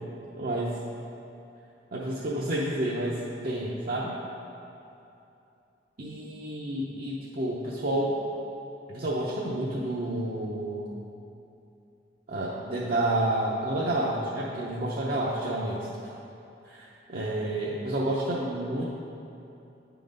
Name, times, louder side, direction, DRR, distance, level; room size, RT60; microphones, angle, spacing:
voice 1, 0.4-0.8 1.9-4.1 6.0-8.2 8.9-10.9 12.3-15.8 16.0-16.2 16.7-18.8, right 1 dB, 55° right, -5 dB, 0.7 m, -30 dB
9.4 x 3.8 x 5.2 m, 2.7 s
head